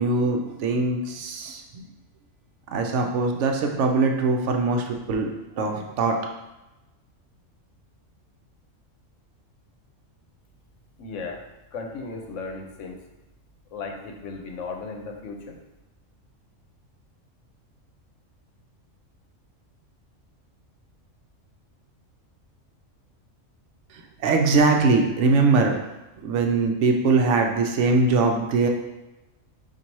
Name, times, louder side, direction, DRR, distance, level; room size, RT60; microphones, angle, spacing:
voice 1, 0.0-1.8 2.7-5.3 5.6-6.2 24.2-25.8 26.2-28.7, right 3 dB, 70° right, 3 dB, 0.9 m, -22 dB
voice 2, 11.0-11.4 11.7-13.0 13.7-15.6, left 4 dB, 75° left, 2 dB, 1.0 m, -35 dB
4.1 x 2.6 x 4.5 m, 1.0 s
omnidirectional pair, 1.3 m